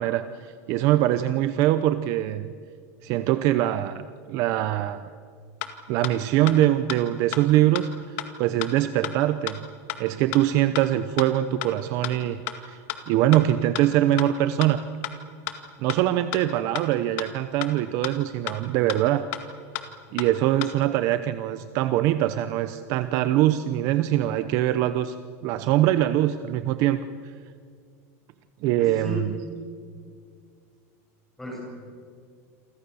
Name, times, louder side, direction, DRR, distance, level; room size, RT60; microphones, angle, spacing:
voice 1, 0.0-2.5 3.0-4.0 4.3-5.1 5.9-9.7 10.0-12.8 13.1-14.8 15.8-19.3 20.1-25.2 25.4-27.0 28.6-29.4, right 13 dB, 40° right, 12 dB, 0.7 m, -23 dB
sound 1, 5.6-5.7 6.0-6.1 6.5-6.6 6.9-7.0 7.3-7.4 7.7-7.8 8.2-8.3 8.6-8.7 9.0-9.1 9.5-9.6 9.9-10.0 10.3-10.4 10.7-10.8 11.2-11.3 11.6-11.7 12.0-12.1 12.5-12.6 12.9-13.0 13.3-13.4 13.7-13.8 14.2-14.3 14.6-14.7 15.0-15.1 15.5-15.6 15.9-16.0 16.3-16.4 16.7-16.8 17.2-17.3 17.6-17.7 18.0-18.1 18.5-18.6 18.9-19.0 19.3-19.4 19.7-19.8 20.2-20.3 20.6-20.7, left 16 dB, 55° left, 2.0 m, -31 dB
voice 2, 28.8-29.3 31.4-31.6, left 1 dB, 5° left, -2 dB, 7.5 m, -33 dB
28.5 x 25.0 x 7.0 m, 2.1 s
supercardioid pair, 180°, 8 cm